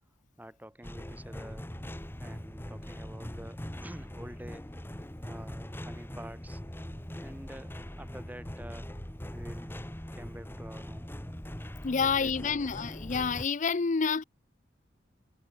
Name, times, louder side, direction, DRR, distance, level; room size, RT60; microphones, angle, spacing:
voice 1, 0.4-1.7 2.2-4.7 5.2-6.6 7.1-8.9 9.3-11.1 12.0-12.6, right 1 dB, 10° right, 3.0 m, -48 dB
sound 1, 0.8-13.5, equal, 10° left, 1.5 m, -41 dB
voice 2, 11.8-14.2, left 5 dB, 40° left, 0.5 m, -28 dB
head